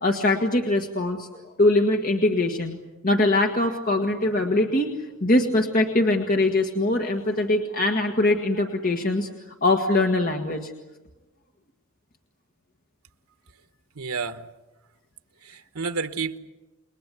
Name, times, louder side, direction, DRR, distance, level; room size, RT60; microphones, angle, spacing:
voice 1, 0.0-2.8 3.0-4.9 5.2-9.3 9.6-10.7, left 2 dB, 40° left, 3 dB, 1.7 m, -22 dB
voice 2, 13.9-14.5 15.4-16.4, right 4 dB, 80° right, 9 dB, 1.3 m, -30 dB
29.0 x 21.5 x 8.3 m, 1.1 s
head